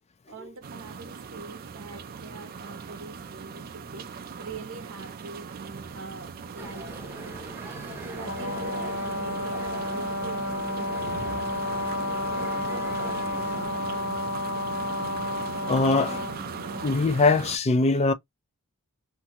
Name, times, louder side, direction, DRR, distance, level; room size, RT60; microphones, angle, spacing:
voice 1, 0.3-7.4 8.0-11.8 12.3-14.3, right 3 dB, 60° right, 0.8 m, -44 dB
sound 1, 0.6-17.6, right 6 dB, 45° right, 0.4 m, -39 dB
sound 2, 6.6-13.7, equal, 10° right, 0.7 m, -42 dB
Brass instrument, 8.2-17.0, left 2 dB, 65° left, 1.0 m, -31 dB
voice 2, 15.5-16.2 16.8-18.1, left 3 dB, 30° left, 0.4 m, -22 dB
2.7 x 2.6 x 2.8 m
head